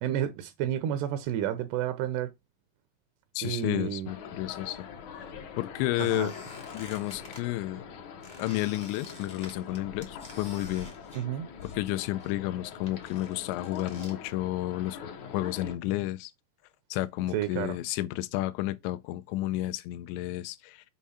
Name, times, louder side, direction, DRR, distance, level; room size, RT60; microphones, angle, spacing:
voice 1, 0.0-2.3 3.4-4.1 6.0-6.3 11.1-11.5 17.3-17.8, right 11 dB, 85° right, 2.6 m, -31 dB
voice 2, 3.4-4.9 5.1-5.3 5.6-6.3 6.7-7.8 8.4-10.9 11.6-15.0 15.3-16.3 16.9-20.8, left 16 dB, 85° left, 2.8 m, -31 dB
sound 1, 4.1-15.8, left 6 dB, 65° left, 1.9 m, -44 dB
Squeak, 6.0-7.4 8.2-11.9 12.2-14.2, left 1 dB, 35° left, 0.7 m, -49 dB
7.4 x 3.5 x 5.6 m
omnidirectional pair, 5.1 m